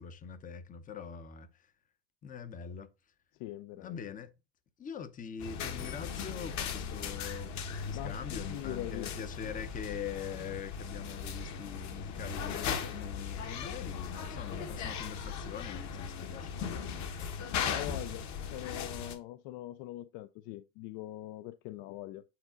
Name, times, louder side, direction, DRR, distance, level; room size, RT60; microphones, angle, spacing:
voice 1, 0.0-1.7 2.2-2.9 3.8-4.3 4.8-17.3, left 7 dB, 20° left, 0.6 m, -43 dB
voice 2, 3.4-4.0 7.9-9.1 17.7-22.2, left 15 dB, 60° left, 0.5 m, -42 dB
sound 1, 5.4-19.2, left 6 dB, 45° left, 1.2 m, -38 dB
8.7 x 3.9 x 3.7 m
cardioid pair, 145°, 40 cm